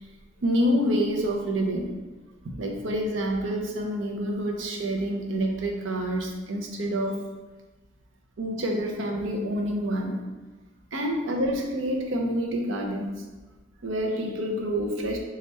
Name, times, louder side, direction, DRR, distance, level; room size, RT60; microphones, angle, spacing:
voice 1, 0.4-1.9 2.6-7.1 8.4-10.2 10.9-13.1 13.8-15.2, equal, 85° right, 1 dB, 0.6 m, -27 dB
3.2 x 2.4 x 4.2 m, 1.2 s
head